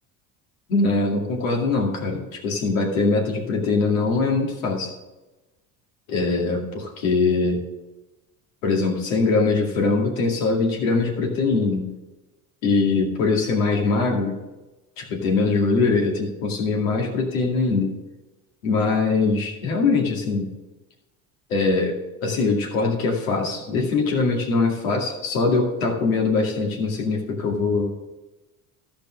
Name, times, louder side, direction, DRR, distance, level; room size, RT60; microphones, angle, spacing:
voice 1, 0.7-4.9 6.1-7.6 8.6-11.9 12.6-14.4 15.0-17.9 18.6-20.5 21.5-21.9 22.2-28.0, left 3 dB, 90° left, 0 dB, 2.3 m, -22 dB
13.5 x 5.1 x 6.2 m, 1.1 s
supercardioid pair, 95°, 39 cm